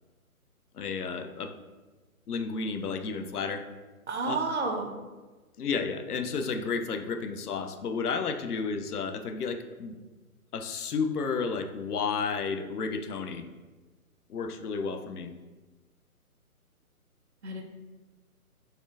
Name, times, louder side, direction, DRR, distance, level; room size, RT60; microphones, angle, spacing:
voice 1, 0.8-1.5 2.3-3.6 4.3-4.4 5.6-10.0 10.5-13.4 14.3-15.3, left 5 dB, 90° left, 8 dB, 0.5 m, -32 dB
voice 2, 4.1-4.9 17.4-17.6, right 3 dB, 50° right, 3 dB, 0.5 m, -30 dB
4.2 x 3.2 x 2.5 m, 1.2 s
figure-of-eight pair, 145°, 44 cm